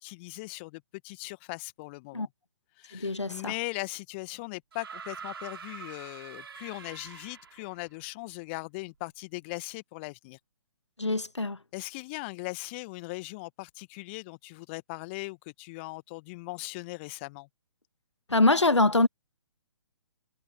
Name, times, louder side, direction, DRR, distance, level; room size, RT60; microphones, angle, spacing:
voice 1, 0.0-2.3 2.8-10.4 11.7-17.5, left 25 dB, 25° left, 1.5 m, -39 dB
voice 2, 2.9-3.5 11.0-11.6 18.3-19.1, left 2 dB, 80° left, 1.5 m, -24 dB
sound 1, 4.7-7.8 9.0-9.1, right 6 dB, 55° right, 5.8 m, -44 dB
figure-of-eight pair, 130°, 15 cm